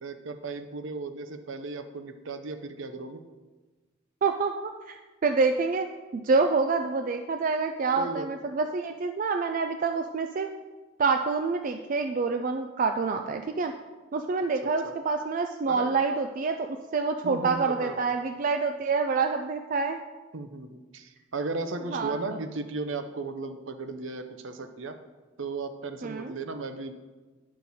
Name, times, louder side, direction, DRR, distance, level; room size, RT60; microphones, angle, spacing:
voice 1, 0.0-3.2 7.9-8.3 14.8-14.9 15.7-15.9 17.2-18.1 20.3-25.0 25.4-26.9, right 3 dB, 65° right, 8 dB, 0.7 m, -36 dB
voice 2, 4.2-5.0 5.2-5.9 6.1-10.5 11.0-13.7 14.1-16.7 16.9-20.0 21.9-22.4 26.0-26.3, right 4 dB, 40° right, 5 dB, 0.3 m, -27 dB
9.8 x 6.3 x 4.1 m, 1.3 s
head